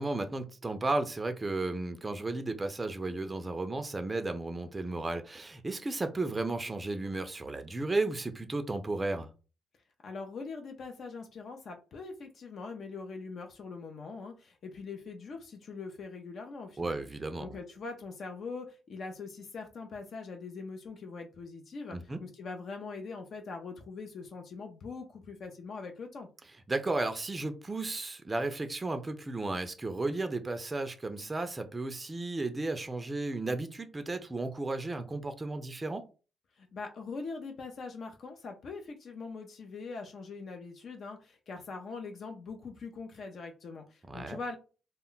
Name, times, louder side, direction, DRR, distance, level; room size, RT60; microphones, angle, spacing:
voice 1, 0.0-9.3 16.8-17.6 21.9-22.2 26.7-36.0 44.1-44.4, right 2 dB, 20° right, 0.4 m, -34 dB
voice 2, 10.0-17.0 17.4-26.3 36.6-44.6, left 4 dB, 55° left, 0.5 m, -42 dB
2.1 x 2.0 x 3.8 m
cardioid pair, 95°, 0 cm